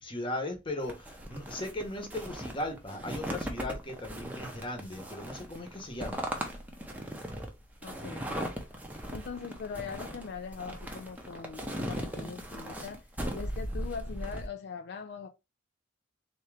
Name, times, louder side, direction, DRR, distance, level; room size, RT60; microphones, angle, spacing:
voice 1, 0.0-6.3, left 1 dB, 25° left, 1.0 m, -37 dB
sound 1, 0.8-14.5, equal, 10° right, 0.7 m, -38 dB
voice 2, 7.8-8.4 9.1-13.1 13.3-15.3, left 6 dB, 55° left, 0.4 m, -41 dB
3.5 x 2.9 x 3.3 m
head